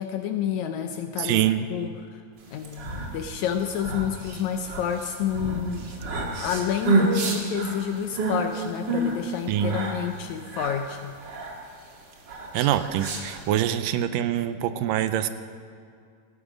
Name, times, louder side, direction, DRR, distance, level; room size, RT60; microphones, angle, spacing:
voice 1, 0.0-2.2 2.5-5.9 6.4-11.1, left 8 dB, 75° left, 6 dB, 1.7 m, -29 dB
voice 2, 1.2-1.7 9.5-9.8 12.5-15.3, right 11 dB, 85° right, 11 dB, 2.3 m, -24 dB
sound 1, 2.5-13.7, right 2 dB, 40° right, 1.8 m, -29 dB
17.5 x 14.5 x 5.2 m, 2.3 s
omnidirectional pair, 3.9 m